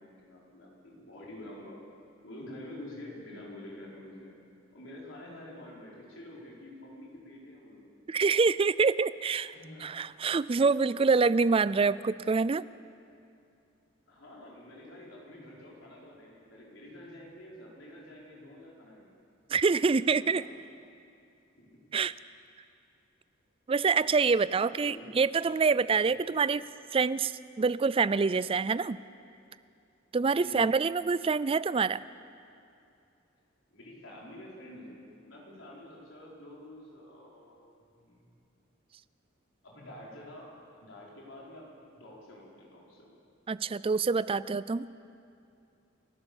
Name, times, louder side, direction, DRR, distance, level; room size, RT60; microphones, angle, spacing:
voice 1, 0.0-1.8 2.2-4.3 4.7-7.9 9.5-9.9 14.1-19.1 20.0-20.7 21.6-21.7 23.8-24.1 24.5-25.1 26.1-26.3 30.4-30.7 33.7-38.3 39.6-43.1, left 1 dB, 75° left, -4 dB, 5.0 m, -48 dB
voice 2, 8.1-9.5 9.8-12.6 19.5-20.4 21.9-22.1 23.7-26.6 26.9-27.3 27.6-29.0 30.1-32.0 43.5-44.9, right 4 dB, 30° right, 17 dB, 0.4 m, -26 dB
29.5 x 12.5 x 7.2 m, 2.6 s
head